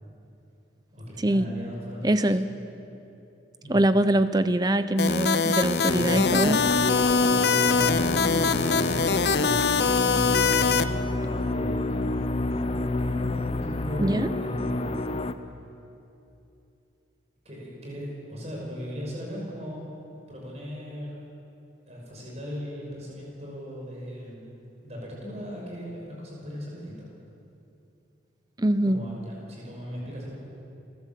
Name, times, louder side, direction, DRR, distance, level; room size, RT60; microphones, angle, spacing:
voice 1, 0.9-2.3 3.6-3.9 7.2-12.3 13.0-15.1 17.4-19.9 20.3-21.2 21.8-24.5 24.8-27.1 28.8-30.3, equal, 35° right, -3 dB, 6.1 m, -37 dB
voice 2, 2.0-2.5 3.7-6.6 14.0-14.3 28.6-29.0, right 1 dB, 20° right, 11 dB, 0.7 m, -23 dB
sound 1, 5.0-10.8, left 5 dB, 65° left, 0.7 m, -23 dB
sound 2, 5.9-15.3, left 2 dB, 30° left, 0.7 m, -28 dB
30.0 x 13.0 x 7.7 m, 2.8 s
head